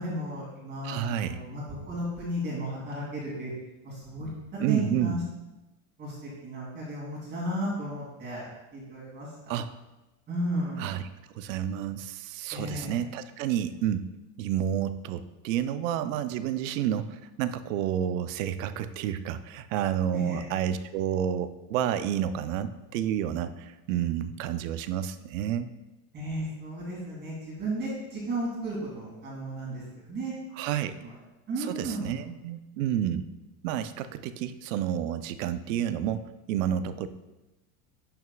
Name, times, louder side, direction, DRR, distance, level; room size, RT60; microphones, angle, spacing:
voice 1, 0.0-3.5 3.8-5.2 6.0-8.5 8.7-9.6 10.3-11.0 12.5-13.1 20.1-20.5 26.1-30.3 31.0-31.1 31.5-32.2, right 1 dB, 25° right, -5 dB, 2.6 m, -34 dB
voice 2, 0.8-1.4 4.6-5.2 9.5-9.7 10.8-11.1 11.4-14.1 14.4-25.7 30.6-30.9 31.6-33.3 33.6-37.1, right 10 dB, 70° right, 12 dB, 0.6 m, -30 dB
11.0 x 6.3 x 2.3 m, 1.0 s
supercardioid pair, 150°, 41 cm